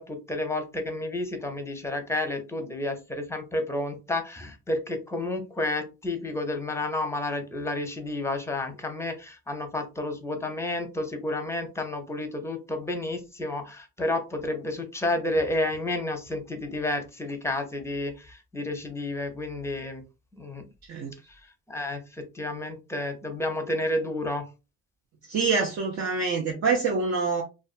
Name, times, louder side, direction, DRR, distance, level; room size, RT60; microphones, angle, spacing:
voice 1, 0.0-20.0 20.3-20.7 21.7-24.5, left 1 dB, 10° left, 0.6 m, -31 dB
voice 2, 25.3-27.4, right 4 dB, 60° right, 0.6 m, -26 dB
2.5 x 2.3 x 2.4 m
cardioid pair, 90°, 30 cm